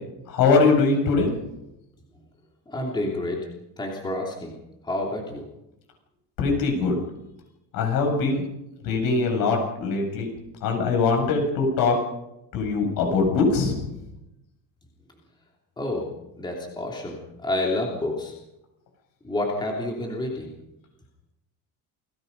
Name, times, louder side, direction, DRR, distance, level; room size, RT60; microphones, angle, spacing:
voice 1, 0.3-1.3 6.4-7.0 7.7-8.4 8.8-10.3 10.6-12.0 12.5-13.7, left 4 dB, 65° left, 2 dB, 7.6 m, -22 dB
voice 2, 2.7-3.4 3.8-4.5 4.8-5.5 15.8-16.1 16.4-18.3 19.2-20.5, left 1 dB, 10° left, 0 dB, 3.2 m, -29 dB
29.5 x 19.0 x 5.5 m, 0.89 s
cardioid pair, 170°, 38 cm